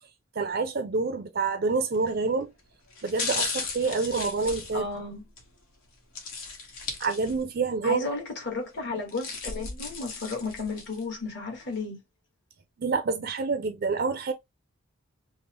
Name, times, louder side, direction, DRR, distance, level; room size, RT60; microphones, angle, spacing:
voice 1, 0.4-2.5 3.0-4.9 7.0-8.0 12.8-14.3, right 4 dB, 45° right, 0.4 m, -27 dB
sound 1, 1.9-2.2 2.9-5.5 6.2-7.6 8.0-8.1 8.9-11.0 11.5-11.6, left 4 dB, 75° left, 1.3 m, -35 dB
voice 2, 4.7-5.2 7.8-12.0, left 3 dB, 50° left, 1.4 m, -33 dB
5.2 x 2.1 x 2.9 m
head